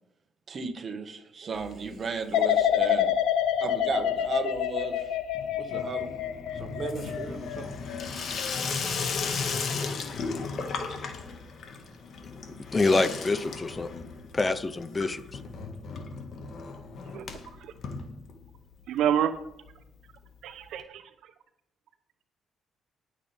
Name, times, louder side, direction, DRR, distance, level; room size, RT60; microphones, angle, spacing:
voice 1, 0.5-3.1 3.6-5.1 5.4-6.2 6.5-7.8, right 4 dB, 45° right, 6 dB, 1.7 m, -35 dB
Water tap faucet / Sink (filling or washing), 1.5-2.3 2.6-3.2 3.4-18.7 19.1-19.2 19.3-19.4 19.7-19.8 20.8-20.9, left 4 dB, 60° left, 1.9 m, -36 dB
sound 1, 2.3-9.3 9.7-10.1, left 10 dB, 90° left, 0.7 m, -28 dB
voice 2, 12.7-14.0 14.3-15.2, left 3 dB, 25° left, 13 dB, 0.7 m, -26 dB
voice 3, 18.9-19.3 20.4-21.0, right 9 dB, 80° right, 10 dB, 0.9 m, -27 dB
19.0 x 7.5 x 3.6 m, 0.82 s
cardioid pair, 90°, 0 cm